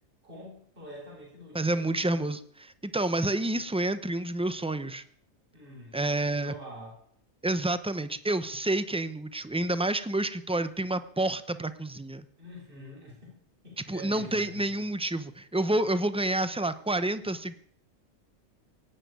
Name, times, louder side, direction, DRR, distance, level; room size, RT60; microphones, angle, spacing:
voice 1, 0.2-2.3 5.5-6.0 6.3-7.0 12.4-13.4 13.6-14.8, equal, 40° right, -1 dB, 4.6 m, -46 dB
voice 2, 1.5-5.0 5.9-6.5 7.4-12.3 13.8-17.5, right 1 dB, 5° right, 12 dB, 0.5 m, -29 dB
17.5 x 7.2 x 9.3 m, 0.64 s
omnidirectional pair, 1.4 m